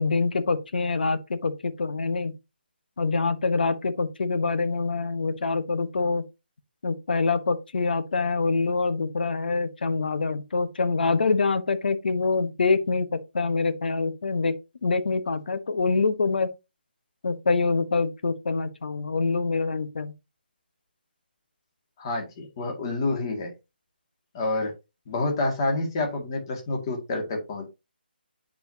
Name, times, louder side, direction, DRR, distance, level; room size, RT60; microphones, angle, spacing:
voice 1, 0.0-2.3 3.0-6.2 6.8-16.5 17.2-20.1, left 4 dB, 60° left, 1.1 m, -25 dB
voice 2, 22.0-23.5 24.3-24.7 25.1-27.6, left 2 dB, 25° left, 2.0 m, -28 dB
8.8 x 4.7 x 2.8 m
hypercardioid pair, 170°, 6 cm